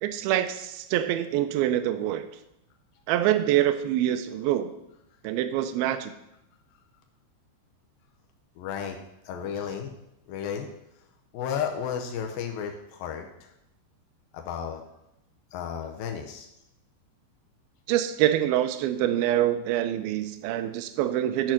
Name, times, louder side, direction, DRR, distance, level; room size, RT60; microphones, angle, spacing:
voice 1, 0.0-2.3 3.1-4.7 5.2-6.1 17.9-21.5, right 12 dB, 90° right, 8 dB, 2.1 m, -25 dB
voice 2, 8.6-9.0 9.2-9.9 10.3-10.7 11.3-13.5 14.3-14.8 15.5-16.5, left 8 dB, 85° left, 3 dB, 2.0 m, -33 dB
10.5 x 4.5 x 5.9 m, 0.85 s
omnidirectional pair, 5.0 m